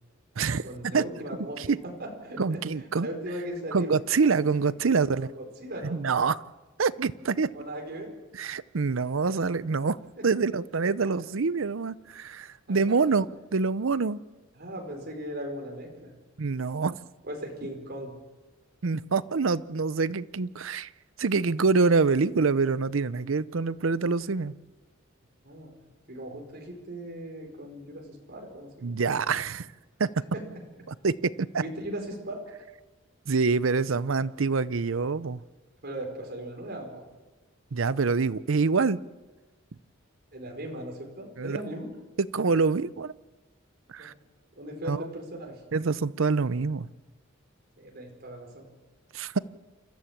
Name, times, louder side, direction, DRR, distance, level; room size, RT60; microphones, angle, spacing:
voice 1, 0.6-4.0 5.2-6.0 7.5-8.1 10.2-10.3 12.7-13.2 14.6-16.1 17.2-18.1 25.4-25.8 26.1-29.0 30.3-30.4 31.6-32.4 35.8-37.0 40.3-41.9 44.0-44.1 44.6-45.6 47.8-48.7, right 1 dB, 50° right, 1 dB, 5.0 m, -38 dB
voice 2, 2.4-3.1 3.7-5.3 5.8-6.4 6.8-7.5 8.3-10.0 10.2-13.3 13.5-14.2 16.4-17.0 18.8-20.9 21.2-24.5 28.8-29.7 30.0-30.1 30.9-31.6 33.3-35.4 37.7-39.0 41.4-41.6 42.2-43.1 43.9-44.1 44.9-45.1 45.7-46.9 49.1-49.4, right 4 dB, 70° right, 17 dB, 0.6 m, -26 dB
28.5 x 14.5 x 7.4 m, 1.2 s
head